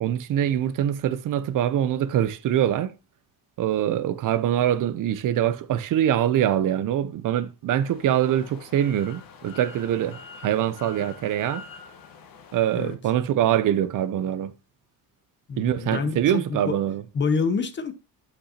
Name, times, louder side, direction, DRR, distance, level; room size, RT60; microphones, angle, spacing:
voice 1, 0.0-2.9 3.6-11.6 12.5-14.5 15.6-17.0, right 11 dB, 55° right, 0.6 m, -24 dB
sound 1, 7.7-12.9, left 6 dB, 60° left, 1.4 m, -45 dB
voice 2, 15.5-16.8 17.1-17.9, left 5 dB, 30° left, 0.7 m, -27 dB
8.6 x 8.2 x 2.8 m
cardioid pair, 160°, 39 cm